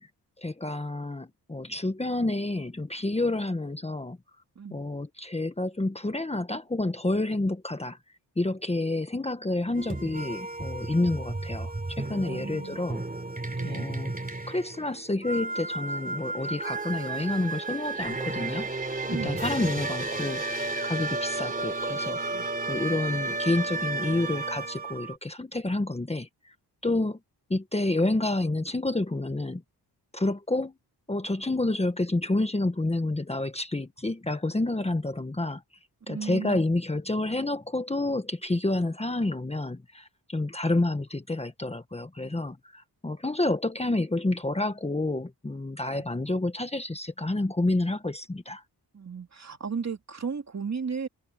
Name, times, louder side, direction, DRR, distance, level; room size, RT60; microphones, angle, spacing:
voice 1, 0.4-4.2 4.7-8.0 8.4-13.0 13.6-14.1 14.5-18.7 19.1-22.4 22.7-26.5 26.8-27.2 27.5-29.6 30.1-30.7 31.1-35.6 36.1-48.6, left 2 dB, 15° left, 1.4 m, -29 dB
sound 1, 9.7-25.2, right 2 dB, 20° right, 3.6 m, -33 dB
voice 2, 12.2-12.8 13.5-13.9 19.0-19.4 22.3-22.5 36.1-36.6 45.9-46.0 48.9-51.1, right 5 dB, 40° right, 2.7 m, -35 dB
wide cardioid pair, 105°, 40 cm